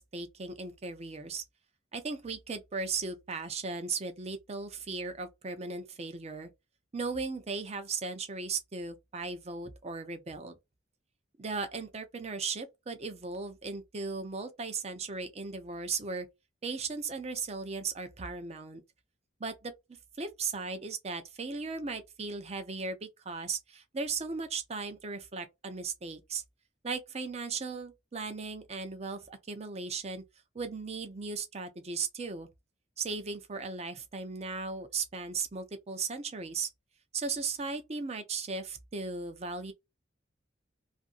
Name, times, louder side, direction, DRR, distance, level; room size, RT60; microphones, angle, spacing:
voice 1, 0.0-1.4 1.9-6.5 6.9-10.6 11.4-16.3 16.6-18.8 19.4-19.7 20.2-26.4 26.8-30.2 30.5-32.5 33.0-36.7 37.1-39.7, right 4 dB, 35° right, 0.6 m, -37 dB
2.6 x 2.6 x 2.4 m
head